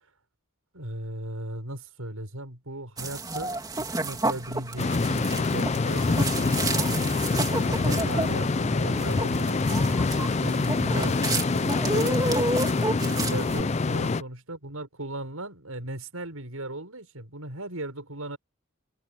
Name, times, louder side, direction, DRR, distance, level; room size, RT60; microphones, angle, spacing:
voice 1, 0.7-7.1 7.5-10.1 10.4-12.4 12.7-18.4, right 1 dB, 80° right, 6.5 m, -37 dB
sound 1, 3.0-13.6, right 2 dB, 20° right, 3.3 m, -31 dB
sound 2, 4.8-14.2, left 3 dB, 30° left, 0.4 m, -25 dB
head